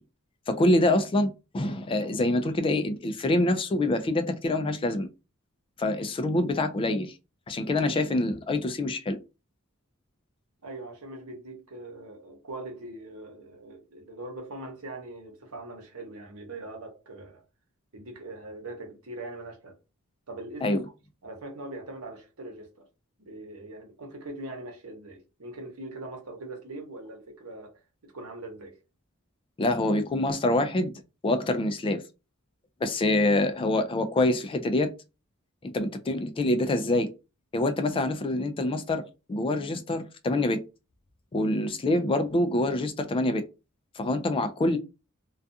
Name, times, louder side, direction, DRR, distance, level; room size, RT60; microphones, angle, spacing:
voice 1, 0.5-5.1 5.8-7.1 7.5-9.2 20.6-20.8 29.6-30.9 31.2-32.0 32.8-34.9 35.6-37.1 37.5-40.6 41.3-43.4 44.0-44.8, left 2 dB, 25° left, 0.3 m, -26 dB
voice 2, 10.6-17.4 17.9-19.7 20.3-20.8 21.2-22.8 23.2-27.7 28.0-28.8, right 2 dB, 85° right, 0.9 m, -41 dB
2.3 x 2.3 x 2.6 m
head